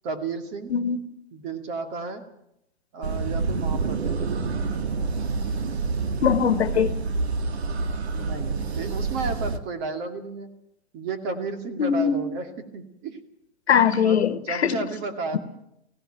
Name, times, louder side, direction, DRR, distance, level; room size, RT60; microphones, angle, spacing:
voice 1, 0.0-0.7 1.3-2.2 2.9-4.2 8.1-10.5 10.9-13.2 14.0-15.4, right 4 dB, 35° right, 8 dB, 2.4 m, -33 dB
sound 1, 3.0-9.6, right 4 dB, 75° right, 1.8 m, -27 dB
voice 2, 6.2-6.9 11.8-12.2 13.7-14.8, left 7 dB, 80° left, 13 dB, 1.5 m, -21 dB
18.0 x 16.5 x 9.1 m, 0.79 s
hypercardioid pair, 135°, 32 cm